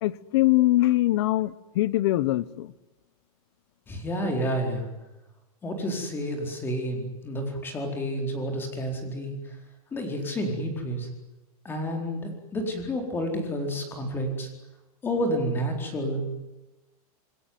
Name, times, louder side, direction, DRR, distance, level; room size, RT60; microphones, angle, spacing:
voice 1, 0.0-2.7, left 16 dB, 45° left, 18 dB, 1.1 m, -23 dB
voice 2, 3.9-4.9 5.6-9.3 9.9-11.1 11.6-14.5 15.0-16.2, equal, 10° left, 3 dB, 4.3 m, -30 dB
27.0 x 21.0 x 9.5 m, 1.0 s
supercardioid pair, 175°, 19 cm